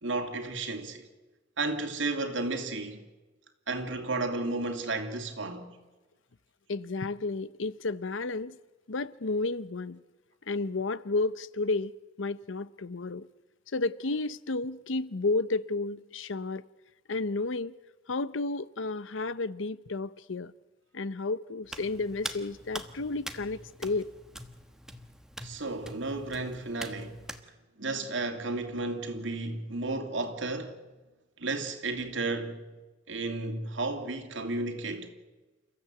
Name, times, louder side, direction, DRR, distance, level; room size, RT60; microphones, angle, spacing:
voice 1, 0.0-1.1 1.6-3.0 3.7-5.8 25.4-27.2 27.8-30.8 31.4-32.6 33.1-35.1, right 3 dB, 80° right, 2.6 m, -33 dB
voice 2, 6.7-8.6 8.9-10.0 10.5-13.3 13.7-16.6 17.1-17.7 18.1-20.5 20.9-24.1, left 3 dB, 90° left, 0.8 m, -32 dB
Hands, 21.7-27.4, right 1 dB, 5° right, 1.2 m, -43 dB
29.0 x 14.5 x 7.9 m
head